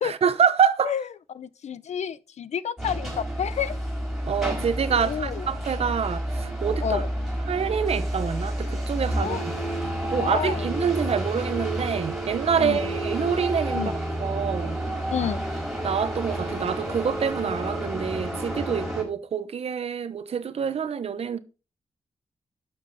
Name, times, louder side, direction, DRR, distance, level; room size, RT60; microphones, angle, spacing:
voice 1, 0.0-0.9 4.3-7.0 7.5-9.5 10.1-13.9 14.2-14.8 15.8-21.4, right 7 dB, 60° right, 1.0 m, -26 dB
voice 2, 1.3-3.8 4.9-5.5 6.8-7.1 9.2-9.4 10.2-10.7 12.6-12.9 13.7-13.9 15.1-15.4, left 8 dB, 85° left, 0.6 m, -30 dB
sound 1, 2.8-19.0, right 1 dB, ahead, 4.7 m, -30 dB
12.0 x 7.2 x 4.2 m
wide cardioid pair, 180°, 11 cm